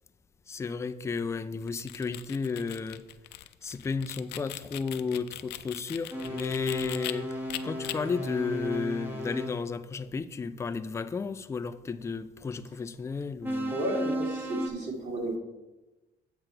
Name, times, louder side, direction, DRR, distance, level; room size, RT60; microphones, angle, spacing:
voice 1, 0.5-3.0 3.6-13.8, left 5 dB, 15° left, 0.4 m, -33 dB
sound 1, 1.6-7.1 7.5-7.9, left 15 dB, 75° left, 0.5 m, -40 dB
sound 2, 6.1-9.6 13.4-14.7, equal, 10° right, 1.2 m, -34 dB
voice 2, 13.7-15.4, right 1 dB, 45° right, 2.3 m, -32 dB
7.8 x 5.9 x 4.5 m
cardioid pair, 110°, 17 cm